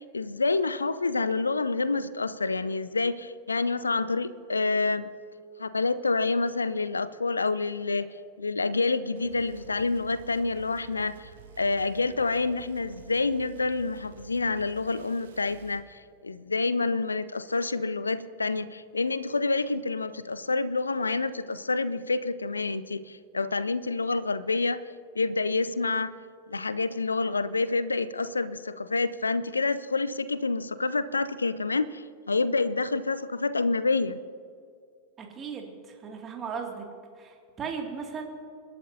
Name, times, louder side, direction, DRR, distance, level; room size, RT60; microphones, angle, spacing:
voice 1, 0.0-5.1 5.6-8.1 8.4-11.3 11.6-24.8 25.2-26.1 26.5-34.2, left 3 dB, 80° left, 16 dB, 0.5 m, -28 dB
sound 1, 9.2-15.9, right 7 dB, 60° right, 1.9 m, -51 dB
voice 2, 35.2-36.8 37.2-38.2, right 6 dB, 25° right, 1 dB, 2.4 m, -37 dB
29.0 x 11.5 x 2.8 m, 2.3 s
figure-of-eight pair, 90°, 0 cm